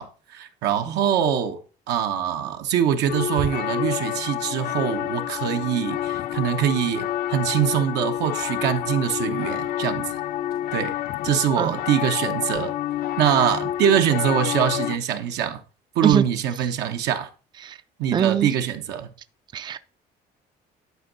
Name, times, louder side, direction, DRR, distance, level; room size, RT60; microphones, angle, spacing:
voice 1, 0.0-1.6 1.9-10.2 10.7-10.9 11.2-12.7 13.2-15.6 15.9-17.3 18.0-19.1, right 9 dB, 85° right, 1.1 m, -23 dB
sound 1, 3.1-15.0, left 13 dB, 60° left, 0.4 m, -28 dB
voice 2, 18.1-18.5 19.5-19.8, right 9 dB, 25° right, 0.4 m, -22 dB
11.0 x 4.6 x 4.0 m
cardioid pair, 110°, 17 cm